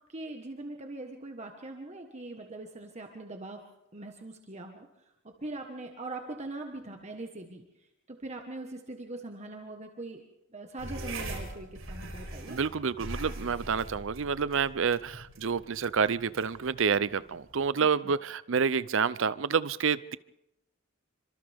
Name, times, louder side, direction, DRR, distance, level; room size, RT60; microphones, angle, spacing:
voice 1, 0.1-3.6 3.9-4.9 5.4-7.6 8.1-10.2 10.5-12.6, right 2 dB, 35° right, 3 dB, 1.5 m, -41 dB
sound 1, 10.8-17.7, right 1 dB, 90° right, 7.8 m, -42 dB
voice 2, 12.5-20.2, right 6 dB, 65° right, 17 dB, 0.6 m, -28 dB
28.5 x 25.5 x 3.6 m, 0.89 s
head